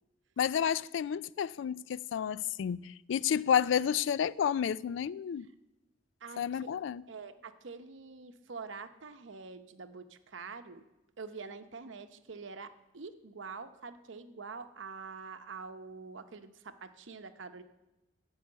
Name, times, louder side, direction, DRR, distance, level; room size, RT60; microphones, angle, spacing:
voice 1, 0.4-5.5 6.4-7.0, left 8 dB, 65° left, 0.3 m, -30 dB
voice 2, 6.2-6.7 7.1-10.8 11.2-17.6, right 4 dB, 70° right, 0.8 m, -46 dB
14.5 x 4.8 x 8.7 m
head